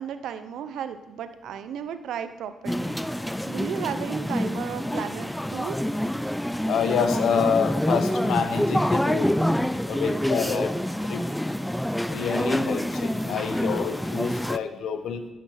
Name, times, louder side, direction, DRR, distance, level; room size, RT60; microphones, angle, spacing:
voice 1, 0.0-3.1 3.5-5.8, right 8 dB, 75° right, 10 dB, 0.8 m, -34 dB
sound 1, 2.7-14.6, equal, 5° left, 0.3 m, -27 dB
voice 2, 6.7-9.4 9.9-10.7 11.0-11.3 12.1-15.3, left 6 dB, 70° left, 9 dB, 1.0 m, -27 dB
12.0 x 6.2 x 5.9 m, 1.0 s
cardioid pair, 90°, 0 cm